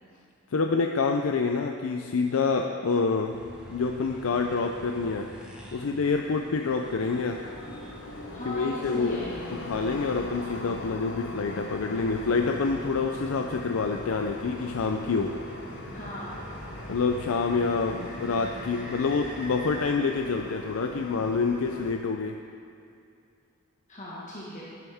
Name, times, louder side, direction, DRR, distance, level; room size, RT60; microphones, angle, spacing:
voice 1, 0.5-3.4 3.7-5.3 5.7-7.4 8.4-9.2 9.5-15.3 16.9-22.4, left 4 dB, 85° left, 4 dB, 0.5 m, -27 dB
sound 1, 3.3-19.9, equal, 5° right, 1.3 m, -45 dB
sound 2, 7.0-22.0, left 2 dB, 65° left, 0.9 m, -42 dB
voice 2, 8.3-9.6 15.9-16.4 23.9-24.6, equal, 35° left, -7 dB, 1.6 m, -37 dB
11.0 x 10.5 x 3.6 m, 2.5 s
head